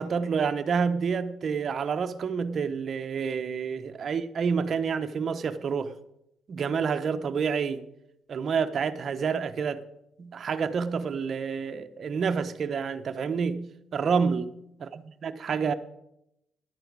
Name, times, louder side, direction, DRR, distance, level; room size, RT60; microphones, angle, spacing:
voice 1, 0.0-5.9 6.5-7.8 8.3-9.8 10.2-13.7 13.9-14.4 14.8-15.7, right 6 dB, 50° right, 0.9 m, -28 dB
11.0 x 9.0 x 6.1 m
cardioid pair, 90°, 0 cm